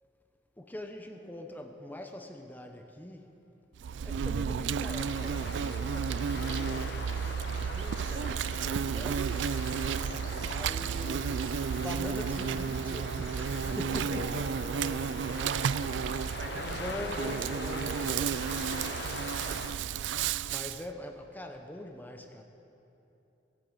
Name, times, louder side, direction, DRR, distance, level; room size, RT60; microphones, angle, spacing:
voice 1, 0.6-3.3 4.0-9.5 10.3-14.4 16.1-16.4 16.7-18.4 19.6-19.7 20.5-22.4, left 1 dB, 10° left, 4 dB, 0.8 m, -43 dB
Insect, 3.8-20.8, right 7 dB, 85° right, 0.4 m, -32 dB
sound 1, 4.9-19.7, left 3 dB, 65° left, 1.0 m, -42 dB
voice 2, 9.7-10.1 13.6-15.4 16.4-18.2, equal, 70° right, 1 dB, 2.1 m, -43 dB
19.0 x 8.8 x 7.9 m, 3.0 s
head